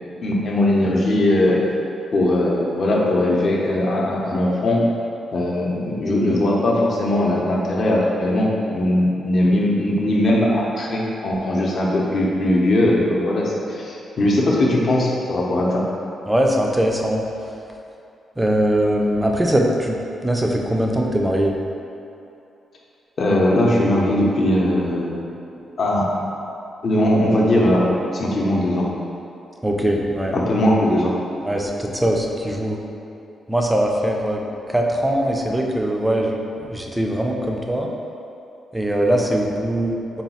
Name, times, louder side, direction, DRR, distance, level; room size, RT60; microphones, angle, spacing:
voice 1, 0.2-1.6 2.1-4.8 5.3-15.9 23.2-25.2 25.8-26.1 26.8-28.9 30.3-31.2, left 1 dB, 45° left, -3 dB, 0.6 m, -19 dB
voice 2, 16.3-17.2 18.4-20.0 20.2-21.5 29.6-30.4 31.4-32.8 33.5-34.4 34.7-37.9 38.7-40.2, right 1 dB, 10° right, 0 dB, 0.3 m, -21 dB
4.0 x 2.3 x 4.1 m, 2.8 s
cardioid pair, 130°, 0 cm